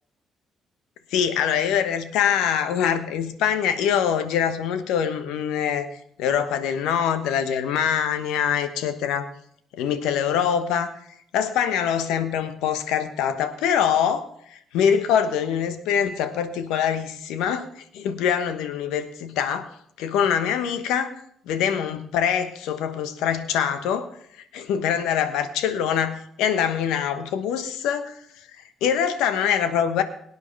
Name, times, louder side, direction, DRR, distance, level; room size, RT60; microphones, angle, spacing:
voice 1, 1.1-5.9 6.2-9.3 9.7-10.9 11.3-14.2 14.5-17.7 17.9-24.1 24.5-28.2 28.8-30.0, left 8 dB, 70° left, 10 dB, 1.2 m, -24 dB
23.0 x 9.5 x 3.4 m, 0.69 s
hypercardioid pair, 45°, 0 cm